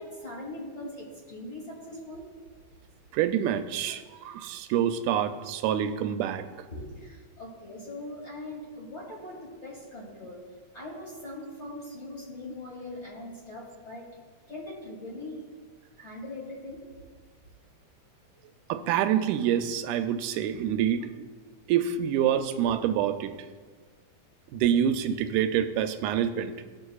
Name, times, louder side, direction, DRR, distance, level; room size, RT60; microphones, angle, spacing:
voice 1, 0.0-2.3 6.7-10.4 10.7-14.1 14.5-15.4 16.0-16.8, left 1 dB, 25° left, -4 dB, 1.7 m, -41 dB
voice 2, 3.1-6.5 18.7-21.3 21.7-23.3 24.5-26.5, right 9 dB, 90° right, 9 dB, 2.1 m, -26 dB
16.5 x 6.6 x 2.3 m, 1.5 s
omnidirectional pair, 3.5 m